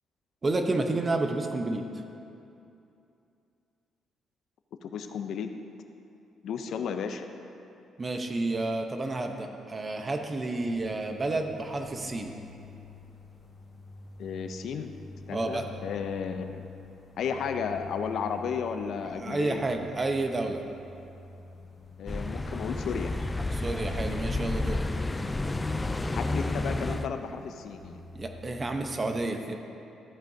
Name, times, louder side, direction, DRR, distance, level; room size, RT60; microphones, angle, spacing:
voice 1, 0.4-1.8 8.0-12.3 15.3-15.6 19.2-20.6 23.5-24.8 28.1-29.5, right 2 dB, 30° right, 5 dB, 0.9 m, -30 dB
voice 2, 4.8-5.5 6.4-7.3 14.2-14.9 15.3-16.6 17.2-19.6 22.0-23.1 26.1-28.0, left 6 dB, 70° left, 7 dB, 0.6 m, -33 dB
sound 1, 10.6-29.0, left 2 dB, 50° left, 2.2 m, -48 dB
sound 2, 22.1-27.1, left 2 dB, 20° left, 0.4 m, -31 dB
13.5 x 8.8 x 2.7 m, 2.7 s
cardioid pair, 90°, 0 cm